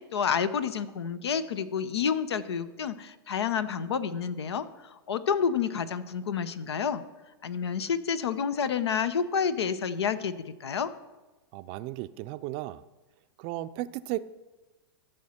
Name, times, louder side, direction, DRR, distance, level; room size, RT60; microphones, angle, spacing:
voice 1, 0.0-4.6 5.1-7.0 7.4-10.3 10.6-10.9, left 7 dB, 80° left, 14 dB, 0.7 m, -29 dB
voice 2, 11.5-12.8 13.4-14.3, right 15 dB, 45° right, 14 dB, 0.5 m, -35 dB
14.5 x 6.4 x 4.3 m, 1.1 s
hypercardioid pair, 115°, 14 cm